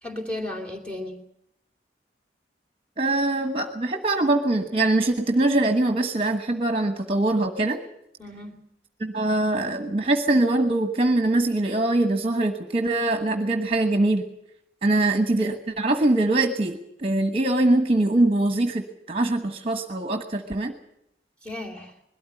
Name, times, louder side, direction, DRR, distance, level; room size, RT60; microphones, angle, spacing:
voice 1, 0.0-1.2 8.2-8.6 15.0-15.1 21.4-21.9, left 1 dB, 5° left, 4 dB, 2.8 m, -34 dB
voice 2, 3.0-7.8 9.0-14.2 14.8-20.7, right 2 dB, 30° right, 6 dB, 1.3 m, -23 dB
21.5 x 13.5 x 9.7 m, 0.79 s
head